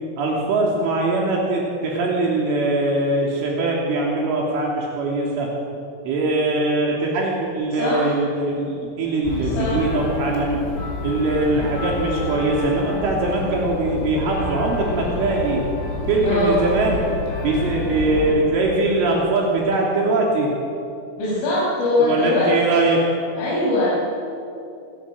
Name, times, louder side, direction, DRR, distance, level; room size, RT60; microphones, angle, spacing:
voice 1, 0.2-5.5 6.1-10.6 11.0-15.6 16.1-17.0 17.4-20.5 22.0-23.0, right 2 dB, 75° right, -2 dB, 5.6 m, -21 dB
voice 2, 7.8-8.1 9.4-9.8 16.2-16.6 21.2-22.5 23.4-23.9, left 2 dB, 75° left, -7 dB, 8.5 m, -21 dB
sound 1, 9.2-18.3, left 3 dB, 90° left, 8.1 m, -29 dB
28.0 x 25.0 x 7.8 m, 2.7 s
omnidirectional pair, 5.7 m